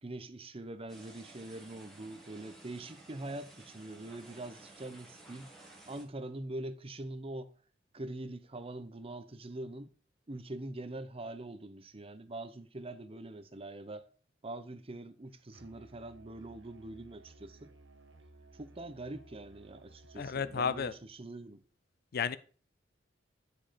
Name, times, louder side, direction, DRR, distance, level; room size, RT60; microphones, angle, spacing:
voice 1, 0.0-5.5 5.9-7.5 7.9-9.9 10.3-14.1 14.4-17.7 18.5-21.6, right 2 dB, 30° right, 0.8 m, -43 dB
sound 1, 0.9-6.0, right 2 dB, ahead, 1.8 m, -55 dB
Musical instrument, 15.5-21.0, right 2 dB, 75° right, 1.3 m, -57 dB
voice 2, 20.2-20.9 22.1-22.4, left 6 dB, 55° left, 0.5 m, -32 dB
9.8 x 5.1 x 4.2 m
head